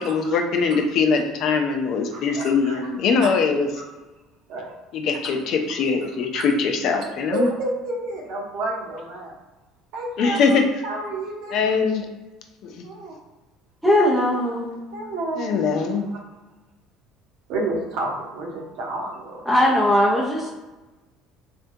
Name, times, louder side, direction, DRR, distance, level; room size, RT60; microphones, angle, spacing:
voice 1, 0.0-3.7 4.9-7.5 10.2-10.6 11.5-12.1 12.6-12.8 15.4-16.0, left 5 dB, 60° left, 4 dB, 0.5 m, -22 dB
voice 2, 2.1-2.9 3.8-3.9 4.5-4.7 6.3-6.4 7.3-9.3 9.9-11.7 12.8-13.2 14.9-15.6 16.1-16.2 17.5-19.7 20.0-20.2, right 2 dB, 70° right, -2 dB, 0.9 m, -30 dB
voice 3, 13.8-14.8 19.5-20.5, left 1 dB, ahead, -5 dB, 0.6 m, -19 dB
3.4 x 2.2 x 2.6 m, 1.1 s
supercardioid pair, 85°, 0 cm